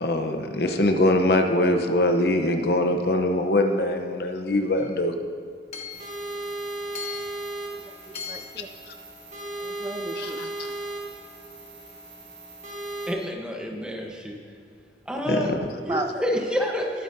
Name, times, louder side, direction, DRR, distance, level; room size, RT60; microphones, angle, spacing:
voice 1, 0.0-5.1 10.2-10.5 15.3-15.7, left 1 dB, 60° left, 5 dB, 0.9 m, -23 dB
Hammer / Chink clink, 4.8-4.9 5.7-6.1 6.9-7.4 8.1-8.6, left 7 dB, 35° left, 1.1 m, -37 dB
sound 1, 5.9-13.1, right 2 dB, 45° right, 3.2 m, -36 dB
voice 2, 7.7-8.7 9.6-10.4 15.1-15.5 15.8-16.1, right 3 dB, 20° right, 6 dB, 0.3 m, -35 dB
voice 3, 13.1-14.4 15.1-15.6 15.8-17.0, equal, 5° right, 0 dB, 1.1 m, -28 dB
21.0 x 9.0 x 2.7 m, 2.3 s
head